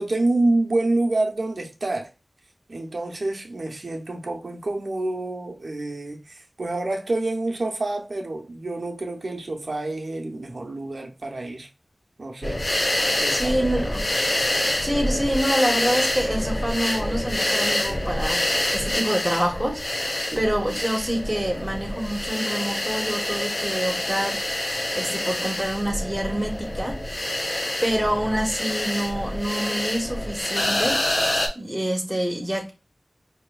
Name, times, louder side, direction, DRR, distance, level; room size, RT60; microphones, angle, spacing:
voice 1, 0.0-2.1 2.7-11.7 12.2-12.7 13.1-14.0 20.3-20.5, right 2 dB, 75° right, 0.7 m, -27 dB
sound 1, 12.4-31.5, left 1 dB, 40° left, 0.8 m, -26 dB
voice 2, 13.3-14.0 14.8-18.4 18.7-24.4 24.9-27.0 27.8-31.2 31.5-32.7, right 1 dB, 10° right, 1.3 m, -26 dB
4.8 x 2.9 x 2.2 m
wide cardioid pair, 65°, 0 cm